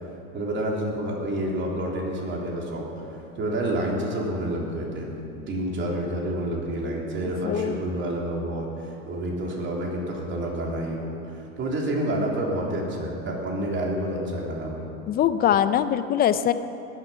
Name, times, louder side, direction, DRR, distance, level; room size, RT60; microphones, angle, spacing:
voice 1, 0.3-2.9 3.4-14.9, right 1 dB, 30° right, -2 dB, 3.5 m, -29 dB
voice 2, 7.4-7.8 15.1-16.5, left 10 dB, 25° left, 13 dB, 0.5 m, -22 dB
18.0 x 11.0 x 5.7 m, 2.8 s
supercardioid pair, 125°, 39 cm